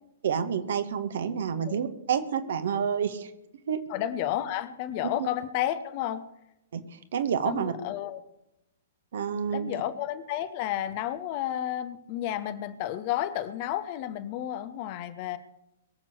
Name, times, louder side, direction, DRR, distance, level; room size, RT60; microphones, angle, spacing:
voice 1, 0.2-3.3 3.7-3.8 5.2-5.3 6.7-6.8 7.1-7.7 9.1-9.7, right 7 dB, 55° right, 9 dB, 1.6 m, -28 dB
voice 2, 3.9-6.2 7.4-8.2 9.5-15.4, left 12 dB, 40° left, 12 dB, 1.2 m, -31 dB
22.5 x 7.5 x 6.3 m, 0.84 s
figure-of-eight pair, 110°, 0 cm